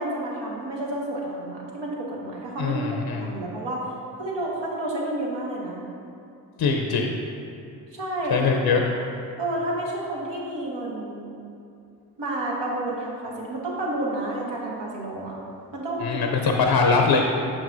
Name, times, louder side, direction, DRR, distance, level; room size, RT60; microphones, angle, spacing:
voice 1, 0.0-2.8 3.1-3.8 4.2-5.8 7.9-8.6 9.4-11.3 12.2-15.4 15.7-16.7, right 1 dB, 70° right, -4 dB, 1.4 m, -30 dB
voice 2, 2.6-3.3 6.6-7.1 8.3-8.8 16.0-17.2, left 4 dB, 60° left, 2 dB, 0.6 m, -22 dB
6.5 x 6.1 x 2.6 m, 2.6 s
supercardioid pair, 40°, 45 cm